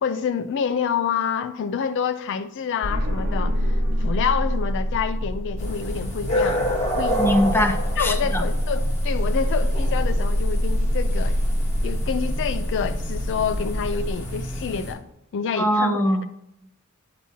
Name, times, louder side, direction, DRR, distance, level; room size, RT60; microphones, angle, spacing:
voice 1, 0.0-6.7 7.0-7.2 8.0-11.4 11.8-15.0 15.3-16.0, left 7 dB, 60° left, 0.3 m, -27 dB
sound 1, 2.8-14.1, equal, 55° right, 0.9 m, -25 dB
sound 2, 5.6-14.9, equal, 35° left, 1.4 m, -29 dB
voice 2, 7.1-8.4 15.6-16.3, equal, 10° left, 0.6 m, -22 dB
8.3 x 2.9 x 5.8 m
head